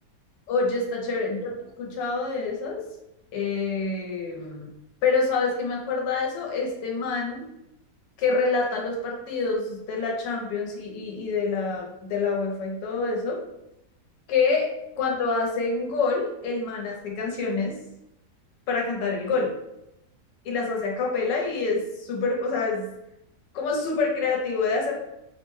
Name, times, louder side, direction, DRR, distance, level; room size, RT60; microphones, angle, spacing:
voice 1, 0.5-1.5 1.8-2.8 3.3-4.7 5.0-7.4 8.2-13.4 14.3-14.7 15.0-17.8 18.7-19.5 20.4-22.9 23.5-24.9, left 4 dB, 80° left, 0 dB, 1.3 m, -26 dB
3.2 x 2.1 x 3.0 m, 0.86 s
omnidirectional pair, 1.9 m